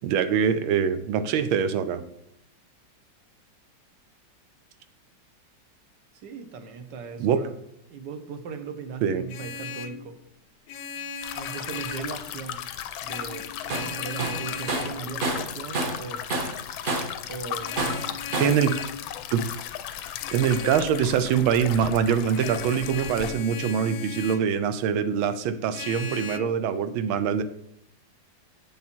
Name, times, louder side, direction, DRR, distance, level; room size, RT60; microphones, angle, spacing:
voice 1, 0.0-2.0 7.2-7.4 9.0-9.2 18.4-18.8 19.3-19.5 20.3-27.4, right 7 dB, 85° right, 12 dB, 1.5 m, -24 dB
voice 2, 6.2-7.5 7.9-10.2 11.3-12.6 13.0-16.2 17.3-18.4, right 5 dB, 65° right, 8 dB, 1.5 m, -38 dB
Vehicle horn car horn honking, 9.1-10.0 10.7-12.2 13.0-15.0 17.6-19.0 20.2-20.9 22.3-24.5 25.7-26.4, left 5 dB, 70° left, 1.0 m, -37 dB
sound 1, 11.2-23.3, left 10 dB, 90° left, 1.4 m, -36 dB
Tools, 13.7-13.9 14.2-16.0 16.3-17.2 17.8-18.6, right 2 dB, 45° right, 0.6 m, -29 dB
7.7 x 7.2 x 4.4 m, 0.74 s
omnidirectional pair, 2.2 m